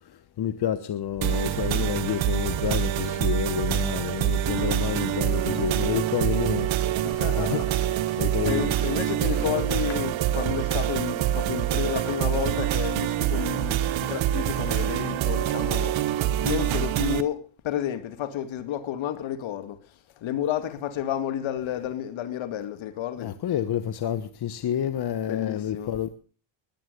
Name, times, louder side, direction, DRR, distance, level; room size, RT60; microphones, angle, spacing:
voice 1, 0.0-6.7 7.0-7.1 7.4-7.6 8.2-8.7 23.2-26.1, left 10 dB, 50° left, 1.4 m, -29 dB
sound 1, 1.2-17.2, right 11 dB, 70° right, 1.5 m, -26 dB
voice 2, 7.0-16.0 16.4-19.8 20.2-23.4 25.3-25.9, left 11 dB, 70° left, 2.4 m, -31 dB
21.0 x 9.2 x 6.8 m
cardioid pair, 105°, 49 cm